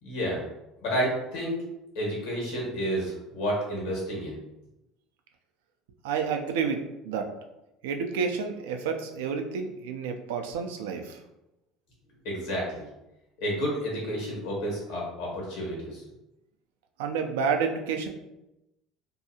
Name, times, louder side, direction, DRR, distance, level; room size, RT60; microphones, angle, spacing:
voice 1, 0.0-0.4 0.8-1.6 1.9-4.4 12.2-12.8 13.4-16.0, equal, 80° left, -4 dB, 1.3 m, -30 dB
voice 2, 6.0-7.3 7.8-11.2 17.0-18.1, right 6 dB, 85° right, 4 dB, 0.3 m, -30 dB
2.7 x 2.3 x 2.7 m, 0.92 s
supercardioid pair, 85°, 0 cm